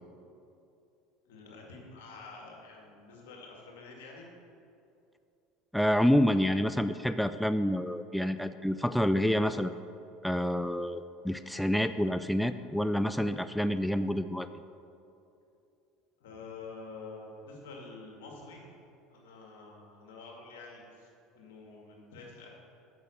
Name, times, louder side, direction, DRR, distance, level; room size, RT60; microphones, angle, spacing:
voice 1, 1.3-4.3 16.2-18.6 19.1-22.5, left 3 dB, 80° left, -1 dB, 2.1 m, -48 dB
voice 2, 5.7-9.8 10.2-14.5, equal, ahead, 11 dB, 0.4 m, -28 dB
8.5 x 6.5 x 6.6 m, 2.7 s
hypercardioid pair, 85°, 0 cm